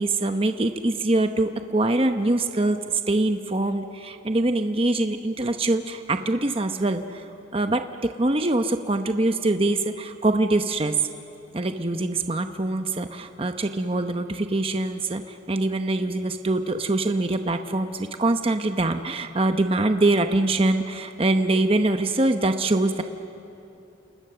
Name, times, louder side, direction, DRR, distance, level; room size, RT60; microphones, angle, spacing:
voice 1, 0.0-2.8 3.1-7.3 7.5-11.0 11.5-23.0, right 2 dB, 30° right, 7 dB, 0.9 m, -24 dB
29.5 x 28.5 x 6.9 m, 2.9 s
head